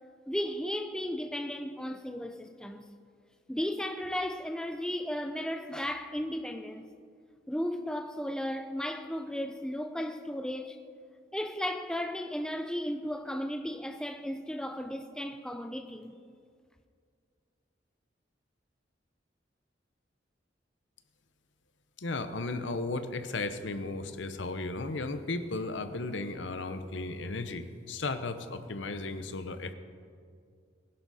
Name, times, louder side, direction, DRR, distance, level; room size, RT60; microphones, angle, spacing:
voice 1, 0.3-2.8 3.5-6.9 7.5-10.8 11.3-16.1, equal, 5° left, 0.5 m, -35 dB
voice 2, 22.0-29.7, left 3 dB, 90° left, 0.9 m, -35 dB
19.5 x 11.0 x 4.2 m
head